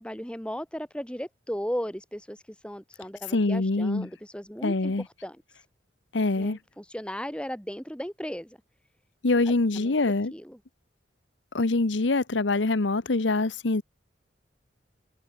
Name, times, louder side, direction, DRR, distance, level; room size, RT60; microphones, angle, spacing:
voice 1, 0.0-4.9 5.2-5.6 6.4-8.6 9.4-10.0 10.3-10.6, equal, 5° left, 7.6 m, -36 dB
voice 2, 3.3-4.1 4.6-5.0 6.1-6.6 9.2-10.3 11.5-13.8, left 3 dB, 75° left, 1.0 m, -24 dB
head